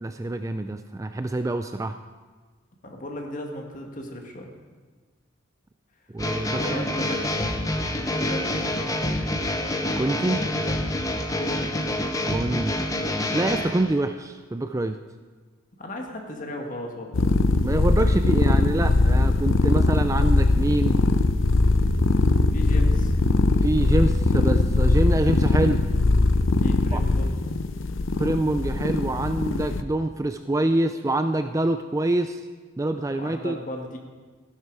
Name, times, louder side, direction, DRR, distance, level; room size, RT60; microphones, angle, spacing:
voice 1, 0.0-2.0 6.1-6.9 10.0-10.4 12.3-12.7 13.3-15.0 17.6-21.0 23.6-25.8 26.9-27.0 28.2-32.4 32.8-33.6, right 2 dB, 15° right, 8 dB, 0.3 m, -25 dB
voice 2, 2.8-4.5 6.5-7.3 8.0-9.0 11.3-11.8 15.8-17.2 22.5-23.1 26.6-27.4 33.1-34.0, left 1 dB, 40° left, 2 dB, 1.9 m, -36 dB
sound 1, 6.2-13.9, left 1 dB, 15° left, 0.9 m, -27 dB
sound 2, 17.1-29.8, left 3 dB, 80° left, 0.6 m, -21 dB
15.5 x 11.5 x 4.8 m, 1.4 s
head